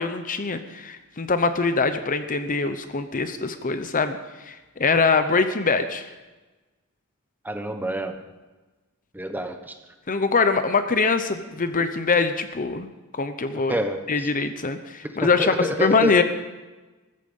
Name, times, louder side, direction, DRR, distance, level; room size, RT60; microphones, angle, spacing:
voice 1, 0.0-4.2 4.5-6.1 10.1-13.7 14.1-16.2, left 4 dB, 40° left, 10 dB, 0.8 m, -23 dB
voice 2, 7.4-8.2 9.1-9.8 13.5-14.3 15.0-16.1, right 1 dB, 10° right, 7 dB, 1.1 m, -28 dB
14.5 x 14.0 x 5.4 m, 1.2 s
head